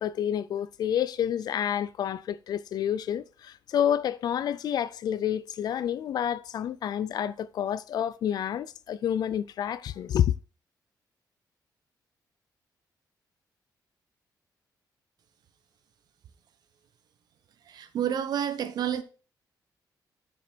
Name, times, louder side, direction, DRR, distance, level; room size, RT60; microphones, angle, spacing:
voice 1, 0.0-10.3, left 9 dB, 60° left, 0.5 m, -29 dB
voice 2, 17.7-19.0, right 9 dB, 60° right, 0.9 m, -29 dB
7.4 x 6.8 x 4.4 m
wide cardioid pair, 170°, 8 cm